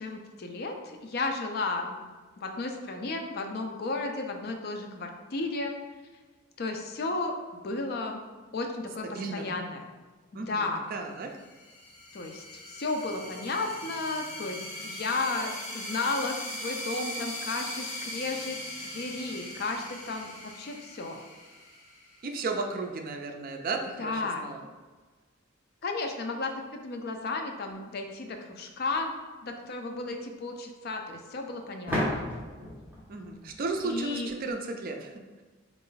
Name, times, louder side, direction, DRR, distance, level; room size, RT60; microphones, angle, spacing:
voice 1, 0.0-2.0 2.4-5.8 6.6-7.4 7.6-8.2 8.5-9.9 10.3-10.9 12.1-18.6 18.8-21.2 24.0-24.4 25.8-26.5 26.8-29.1 29.4-32.3 33.8-34.3, left 3 dB, 50° left, 4 dB, 0.5 m, -33 dB
voice 2, 9.1-9.5 10.3-11.3 22.2-24.6 33.1-35.1, right 3 dB, 45° right, 4 dB, 0.4 m, -34 dB
sound 1, 11.2-22.5, left 1 dB, 35° left, 0.9 m, -40 dB
sound 2, 31.9-34.5, left 1 dB, 10° right, 1.1 m, -34 dB
4.1 x 2.5 x 3.8 m, 1.3 s
head